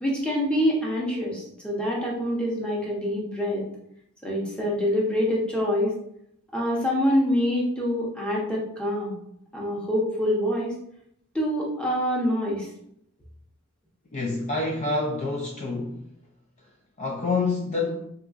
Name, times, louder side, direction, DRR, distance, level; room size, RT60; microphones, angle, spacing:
voice 1, 0.0-3.6 4.2-5.9 6.5-9.1 9.5-10.7 11.3-12.7, equal, 5° left, -4 dB, 0.8 m, -25 dB
voice 2, 14.1-16.0 17.0-18.1, left 3 dB, 35° left, -1 dB, 0.3 m, -27 dB
3.5 x 2.8 x 2.4 m, 0.73 s
head